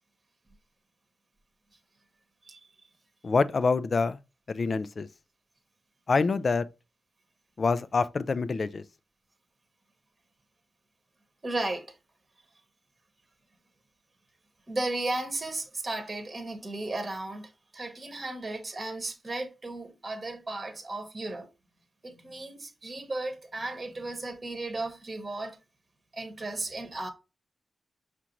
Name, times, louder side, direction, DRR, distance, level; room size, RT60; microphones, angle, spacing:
voice 1, 3.2-4.2 4.5-5.1 6.1-6.7 7.6-8.8, left 4 dB, 45° left, 0.3 m, -26 dB
voice 2, 11.4-11.9 14.7-21.5 22.0-25.6 26.1-27.1, right 2 dB, 30° right, 0.9 m, -35 dB
5.7 x 2.5 x 2.9 m
wide cardioid pair, 110°, 0 cm